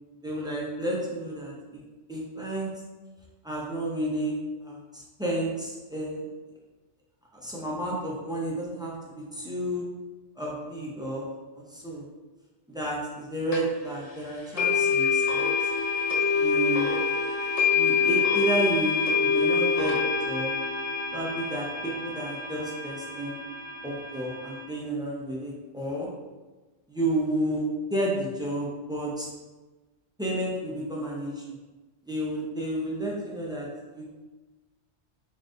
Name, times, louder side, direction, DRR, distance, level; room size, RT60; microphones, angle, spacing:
voice 1, 0.2-1.5 2.1-2.7 3.4-4.3 4.6-6.2 7.3-9.8 10.4-11.3 11.5-12.1 12.7-15.7 16.3-16.9 17.7-20.5 21.1-23.4 23.8-26.1 26.9-29.3 30.2-31.4 32.0-34.1, right 1 dB, 5° right, -4 dB, 0.4 m, -31 dB
sound 1, 13.5-13.6 14.6-24.6, left 5 dB, 40° left, 0.6 m, -26 dB
3.9 x 2.5 x 3.7 m, 1.2 s
omnidirectional pair, 1.2 m